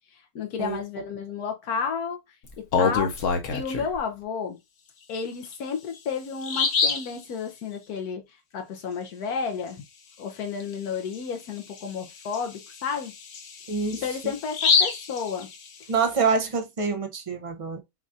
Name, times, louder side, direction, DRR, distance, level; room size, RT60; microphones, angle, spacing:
voice 1, 0.3-2.2 2.6-3.1 3.5-4.6 5.1-8.2 8.5-9.8 10.2-13.1 13.9-15.5, left 6 dB, 80° left, 1.3 m, -31 dB
Bird vocalization bird call bird song, 2.5-4.0 5.4-5.5 6.0-6.1 6.4-7.1 10.6-10.7 11.1-11.2 11.8-16.0, left 5 dB, 60° left, 1.2 m, -26 dB
voice 2, 13.7-14.3 15.9-17.8, right 5 dB, 30° right, 0.6 m, -26 dB
6.2 x 2.4 x 2.6 m
omnidirectional pair, 1.6 m